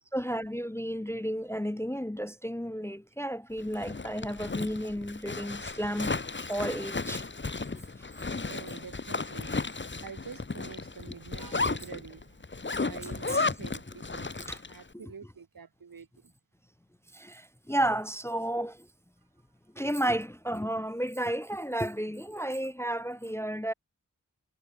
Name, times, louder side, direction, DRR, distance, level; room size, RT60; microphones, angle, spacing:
voice 1, 0.1-6.2 6.5-7.2 12.8-12.9 13.3-13.4 14.5-14.6 17.1-18.9 19.8-23.7, right 1 dB, 10° left, 0.4 m, -32 dB
Zipper (clothing), 3.6-14.8, left 3 dB, 35° left, 1.0 m, -34 dB
voice 2, 8.5-14.4 14.7-16.3, right 6 dB, 85° right, 1.2 m, -47 dB
wide cardioid pair, 55°, 34 cm